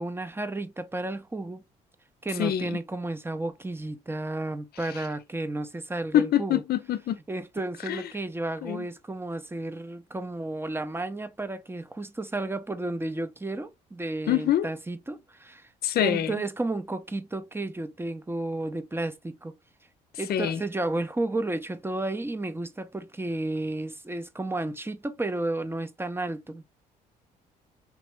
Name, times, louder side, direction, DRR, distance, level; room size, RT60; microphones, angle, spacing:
voice 1, 0.0-1.6 2.2-6.6 7.3-15.7 16.0-19.5 20.2-26.7, right 2 dB, 10° right, 0.7 m, -32 dB
voice 2, 6.1-7.2 7.9-8.1 8.6-8.9 14.3-14.7 15.8-16.3 20.3-20.6, left 11 dB, 50° left, 0.5 m, -25 dB
3.6 x 3.0 x 3.0 m
hypercardioid pair, 55°, 21 cm